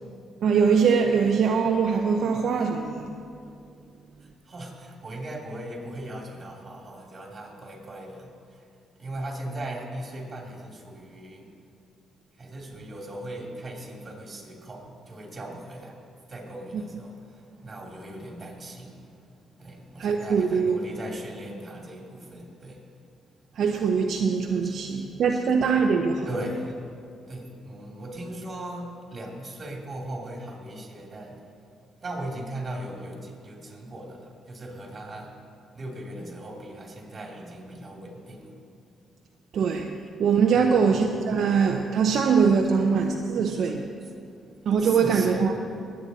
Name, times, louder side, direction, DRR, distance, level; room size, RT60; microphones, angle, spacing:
voice 1, 0.4-3.1 16.7-16.8 20.0-20.8 23.6-26.3 39.5-43.9 44.7-45.5, right 6 dB, 65° right, 3 dB, 0.6 m, -22 dB
voice 2, 4.2-8.7 8.9-11.5 12.4-23.0 24.6-25.5 26.2-26.9 27.2-31.4 32.0-38.5 40.5-41.0 41.3-41.4 44.0-45.8, right 1 dB, 35° right, 0 dB, 2.8 m, -39 dB
19.5 x 8.7 x 4.1 m, 2.5 s
cardioid pair, 90°, 0 cm